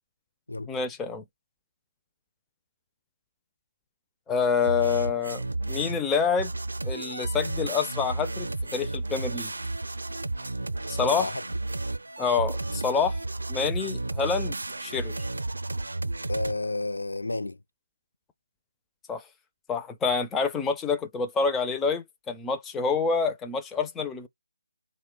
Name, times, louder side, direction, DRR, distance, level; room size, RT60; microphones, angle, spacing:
voice 1, 0.7-1.2 4.3-6.5 6.8-9.5 10.9-11.3 12.2-13.2 13.5-14.5 14.8-15.1 19.1-19.2 19.7-24.3, left 5 dB, 10° left, 0.4 m, -27 dB
sound 1, 4.6-6.1 6.4-16.5, right 2 dB, 70° right, 0.4 m, -32 dB
voice 2, 11.0-11.4 16.3-17.6, left 2 dB, 75° left, 0.5 m, -31 dB
4.2 x 2.1 x 3.6 m
figure-of-eight pair, 150°, 0 cm